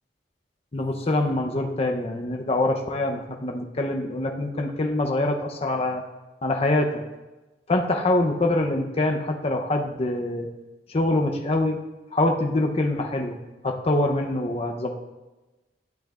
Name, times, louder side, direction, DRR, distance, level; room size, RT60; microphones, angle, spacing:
voice 1, 0.7-6.0 6.4-7.0 7.7-10.5 10.9-11.8 12.1-13.4 13.6-14.9, left 2 dB, 35° left, 2 dB, 0.6 m, -24 dB
11.5 x 7.8 x 2.4 m, 1.1 s
head